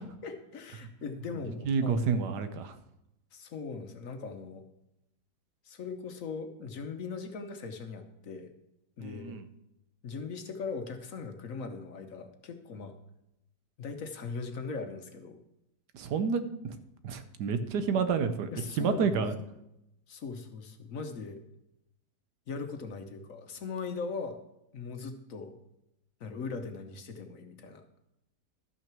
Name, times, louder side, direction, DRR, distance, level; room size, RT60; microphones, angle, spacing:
voice 1, 0.0-2.3 3.3-4.6 5.6-8.5 9.0-9.4 10.0-13.0 13.8-15.4 18.5-19.2 20.1-21.4 22.5-24.4 24.7-25.5 26.2-27.8, left 4 dB, 55° left, 7 dB, 1.2 m, -39 dB
voice 2, 1.6-2.7 9.0-9.5 15.9-16.8 17.0-18.5 18.8-19.3, right 5 dB, 75° right, 10 dB, 1.4 m, -29 dB
12.5 x 6.0 x 6.0 m, 0.85 s
omnidirectional pair, 1.8 m